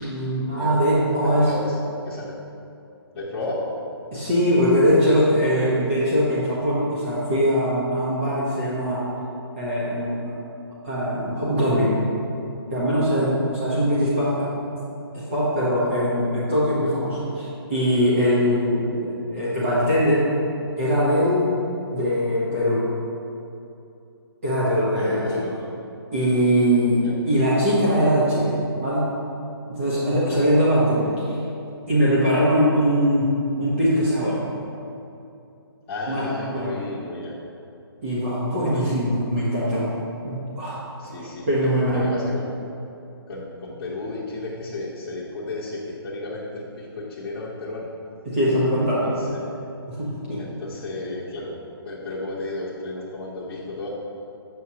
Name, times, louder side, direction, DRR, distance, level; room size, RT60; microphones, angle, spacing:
voice 1, 0.0-1.5 4.1-9.0 9.6-10.2 10.8-12.0 12.7-14.5 15.1-20.3 20.8-21.5 21.9-22.8 24.4-25.6 26.1-28.5 28.8-29.1 29.7-31.4 31.9-33.3 33.6-34.4 36.1-36.8 38.0-39.9 40.2-40.8 41.5-42.1 48.2-49.1 49.9-50.4, equal, 30° right, -9 dB, 1.0 m, -21 dB
voice 2, 1.1-1.8 2.0-2.4 3.1-3.6 13.7-13.8 25.0-25.7 27.0-27.1 30.3-30.4 35.9-37.4 38.7-39.1 41.0-42.5 43.3-47.9 48.7-49.6 50.4-51.6 51.8-53.9, left 2 dB, 5° left, -12 dB, 0.7 m, -33 dB
7.5 x 6.1 x 2.8 m, 2.7 s
hypercardioid pair, 180°, 14 cm